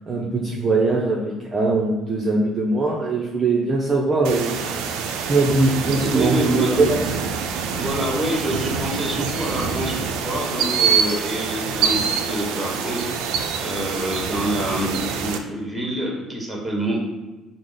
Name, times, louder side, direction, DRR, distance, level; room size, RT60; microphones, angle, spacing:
voice 1, 0.1-4.8 5.2-7.0, right 3 dB, 30° right, -4 dB, 0.5 m, -21 dB
sound 1, 4.2-15.4, right 6 dB, 80° right, 0.3 m, -25 dB
voice 2, 5.9-6.8 7.7-14.9 15.2-17.0, equal, 10° right, -2 dB, 1.2 m, -27 dB
4.7 x 2.0 x 3.8 m, 1.1 s
supercardioid pair, 95°, 0 cm